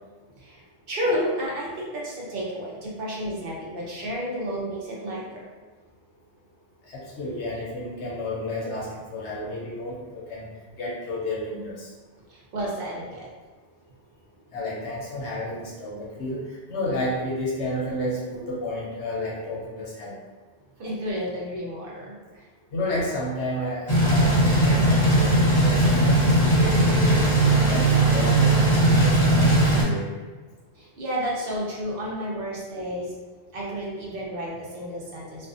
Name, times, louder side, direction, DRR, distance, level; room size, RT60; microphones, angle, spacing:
voice 1, 0.9-5.4 12.3-13.3 20.8-22.4 30.8-33.1 33.5-35.5, equal, 55° right, -5 dB, 0.7 m, -31 dB
voice 2, 6.9-10.5 10.8-11.9 14.5-20.1 22.7-27.2 27.5-30.1, left 1 dB, 65° left, -5 dB, 0.9 m, -31 dB
sound 1, 23.9-29.8, right 1 dB, 40° left, 0.7 m, -19 dB
2.4 x 2.4 x 2.4 m, 1.3 s
omnidirectional pair, 1.3 m